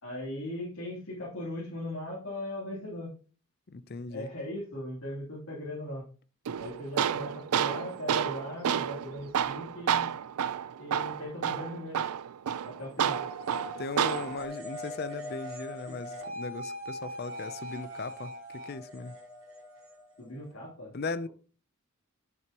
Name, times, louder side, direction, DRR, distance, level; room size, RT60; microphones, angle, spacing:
voice 1, 0.0-3.1 4.1-6.0 6.6-10.1 10.8-12.0 12.6-13.2 20.2-20.9, left 1 dB, 70° left, 3.2 m, -38 dB
voice 2, 3.7-4.3 13.8-19.2 20.9-21.3, left 3 dB, 45° left, 0.5 m, -38 dB
Tools, 6.5-14.5, right 8 dB, 85° right, 0.4 m, -30 dB
sound 1, 13.0-20.5, equal, 60° right, 3.0 m, -41 dB
9.4 x 7.6 x 2.9 m
head